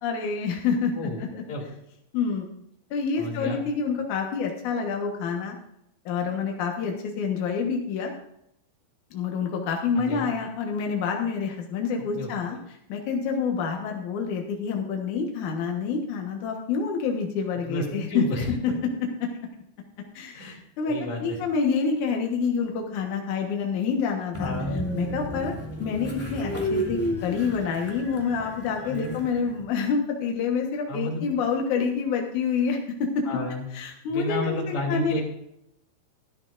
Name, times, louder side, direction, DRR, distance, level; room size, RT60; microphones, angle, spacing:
voice 1, 0.0-0.9 1.2-1.3 2.1-2.5 2.9-5.6 6.0-8.1 9.1-12.6 12.9-18.2 18.6-18.7 19.2-19.3 20.1-24.5 24.9-25.5 25.8-33.2 33.7-35.2, left 5 dB, 75° left, 1 dB, 1.8 m, -27 dB
voice 2, 3.2-3.6 10.0-10.4 12.1-12.6 17.6-18.5 20.3-20.6 20.9-21.4 24.4-24.7 28.8-29.1 30.9-31.2 33.3-33.7 34.1-35.2, left 1 dB, 40° left, -2 dB, 3.7 m, -31 dB
Train, 24.3-29.6, equal, 10° left, 0.8 m, -32 dB
13.5 x 13.5 x 2.5 m, 0.77 s
omnidirectional pair, 5.5 m